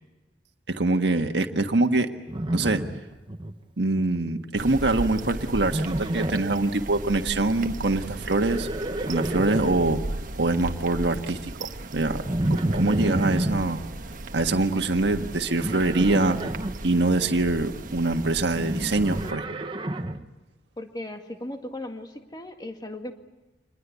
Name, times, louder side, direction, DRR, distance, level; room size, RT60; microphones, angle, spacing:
voice 1, 0.7-2.1 2.5-2.8 3.8-8.7 9.1-10.0 10.4-12.2 12.5-13.8 14.3-16.4 16.8-19.6, right 2 dB, 70° right, 5 dB, 1.6 m, -24 dB
Livestock farm animals working animals, 2.3-3.5 3.8-4.3 5.6-6.6 8.2-10.0 12.3-13.6 15.6-16.7 18.5-20.3, right 1 dB, 30° right, 1.0 m, -29 dB
sound 1, 4.6-19.3, right 2 dB, 50° right, 1.3 m, -37 dB
voice 2, 20.8-23.1, left 1 dB, 20° left, 5 dB, 2.0 m, -37 dB
26.5 x 21.0 x 8.3 m, 1.1 s
head